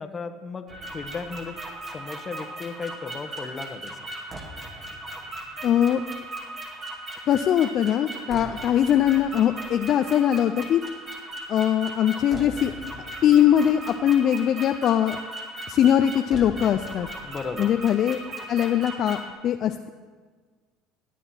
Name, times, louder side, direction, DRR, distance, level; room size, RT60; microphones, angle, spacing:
voice 1, 0.0-1.6 1.9-4.0 8.4-8.7 17.2-17.7, left 4 dB, 30° left, 9 dB, 1.2 m, -35 dB
sound 1, 0.7-19.3, right 1 dB, 30° right, 2.5 m, -38 dB
voice 2, 5.6-6.0 7.3-10.8 11.5-12.7 13.2-15.2 15.7-17.1 17.6-18.2 18.5-19.2 19.4-19.9, left 10 dB, 55° left, 7 dB, 0.5 m, -21 dB
16.0 x 9.0 x 4.5 m, 1.5 s
hypercardioid pair, 80°, 0 cm